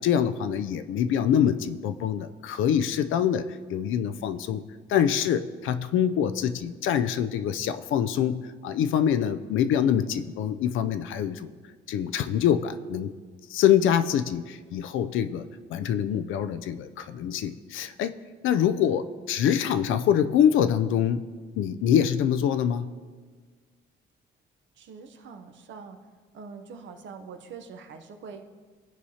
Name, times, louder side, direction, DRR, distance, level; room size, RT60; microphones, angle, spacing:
voice 1, 0.0-4.6 4.9-11.5 11.9-13.1 13.5-18.2 18.4-21.3 21.6-22.9, left 9 dB, 80° left, 11 dB, 0.4 m, -25 dB
voice 2, 24.8-26.0 26.3-28.4, right 5 dB, 70° right, 6 dB, 0.8 m, -44 dB
14.5 x 4.8 x 2.8 m, 1.5 s
cardioid pair, 90°, 20 cm